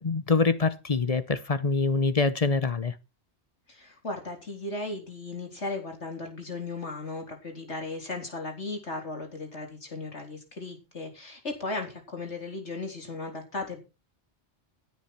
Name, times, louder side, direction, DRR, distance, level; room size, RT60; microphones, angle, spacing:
voice 1, 0.0-2.9, left 4 dB, 35° left, 0.9 m, -25 dB
voice 2, 3.7-13.8, left 3 dB, 85° left, 4.2 m, -36 dB
17.0 x 8.6 x 4.5 m
omnidirectional pair, 1.1 m